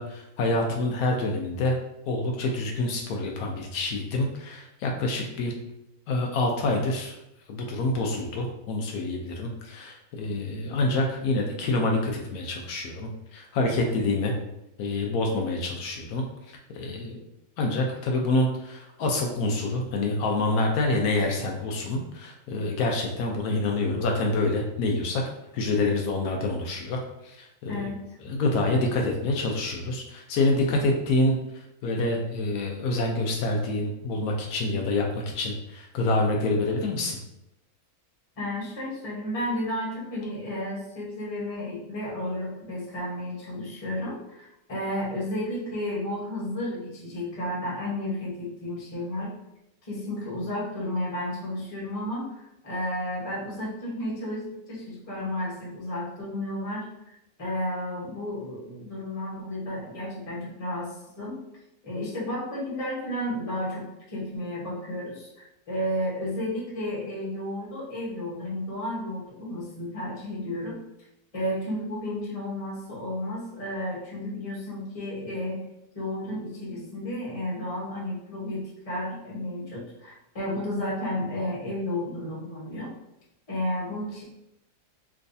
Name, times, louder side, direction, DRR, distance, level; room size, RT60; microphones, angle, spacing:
voice 1, 0.0-1.7 2.1-5.5 6.1-7.2 7.5-14.3 14.8-16.2 16.7-17.2 17.6-25.2 25.5-27.9 28.2-37.2, left 2 dB, 80° left, 1 dB, 1.1 m, -27 dB
voice 2, 27.7-28.1 38.4-49.3 49.8-61.4 61.8-65.3 65.7-70.8 71.3-75.7 75.9-82.9 83.5-84.2, left 1 dB, 25° left, -6 dB, 1.0 m, -32 dB
3.4 x 3.0 x 2.6 m, 0.86 s
omnidirectional pair, 1.5 m